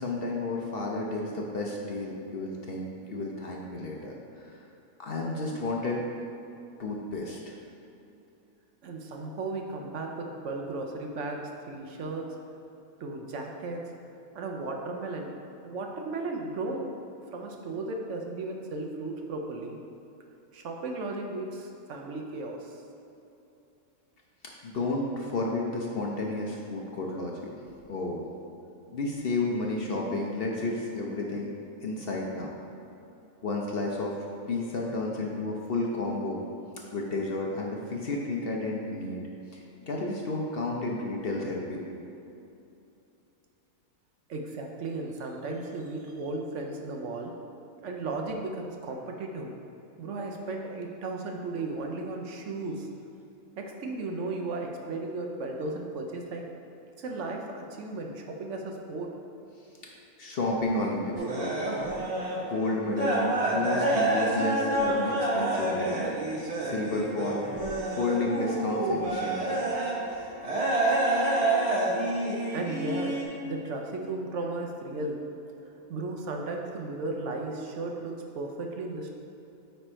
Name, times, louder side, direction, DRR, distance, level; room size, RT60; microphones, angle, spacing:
voice 1, 0.0-4.6 5.0-6.0 6.8-7.5 24.6-27.3 27.9-28.3 28.9-31.5 31.8-32.5 33.4-34.1 34.5-36.4 36.9-39.2 39.5-41.8 60.2-61.6 62.4-66.1 66.6-67.4 67.9-69.6, left 2 dB, 55° left, -1 dB, 0.8 m, -31 dB
voice 2, 8.8-12.3 13.0-13.9 14.3-15.3 15.6-16.9 17.3-19.8 20.5-22.7 44.3-47.3 47.8-49.5 50.0-52.9 53.6-56.5 57.0-59.1 72.5-75.2 75.9-79.1, right 2 dB, 65° right, 2 dB, 0.9 m, -35 dB
sound 1, 61.1-62.4 62.7-69.9 70.4-73.2, right 2 dB, 30° right, 0.9 m, -28 dB
9.4 x 3.4 x 4.3 m, 2.8 s
omnidirectional pair, 1.4 m